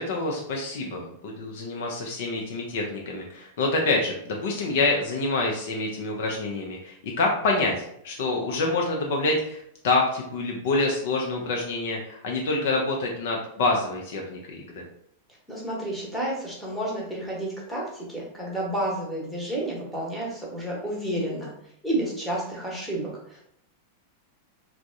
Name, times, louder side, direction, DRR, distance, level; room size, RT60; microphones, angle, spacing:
voice 1, 0.0-14.8, left 2 dB, 50° left, 0 dB, 0.4 m, -27 dB
voice 2, 15.5-21.5 21.8-23.4, right 1 dB, ahead, -5 dB, 1.0 m, -30 dB
3.3 x 2.0 x 2.6 m, 0.72 s
figure-of-eight pair, 90°, 0 cm